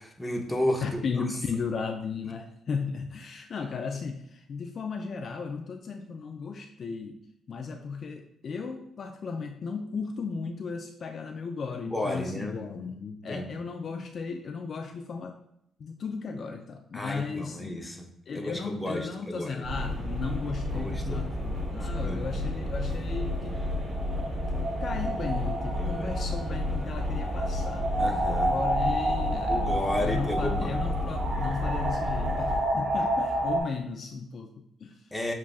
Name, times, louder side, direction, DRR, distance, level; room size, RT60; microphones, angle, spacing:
voice 1, 0.0-1.4 11.9-12.6 13.3-13.5 16.9-18.1 18.3-19.7 20.7-21.3 21.8-22.3 25.7-26.2 28.0-28.5 29.5-30.8 35.1-35.3, left 1 dB, 10° left, 1 dB, 0.7 m, -33 dB
voice 2, 0.8-7.2 7.5-15.4 15.8-17.8 18.3-23.6 24.8-27.9 28.5-29.7 30.0-35.1, left 5 dB, 50° left, 5 dB, 0.3 m, -35 dB
sound 1, 19.6-32.6, left 1 dB, 35° right, 1.0 m, -32 dB
sound 2, 20.4-33.6, right 1 dB, 55° right, 1.7 m, -31 dB
7.3 x 2.4 x 2.4 m, 0.75 s
cardioid pair, 90°, 0 cm